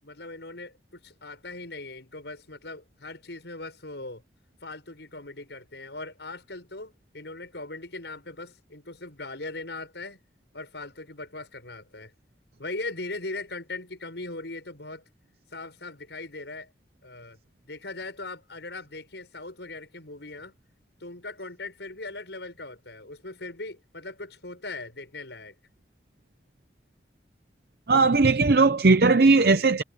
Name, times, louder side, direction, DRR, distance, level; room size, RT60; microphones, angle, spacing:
voice 1, 0.0-4.2 4.6-10.2 10.5-12.1 12.6-15.0 15.5-16.7 17.0-17.4 17.6-20.6 21.0-25.5, left 2 dB, 85° left, 7.0 m, -39 dB
voice 2, 27.9-29.8, right 3 dB, 60° right, 0.7 m, -18 dB
head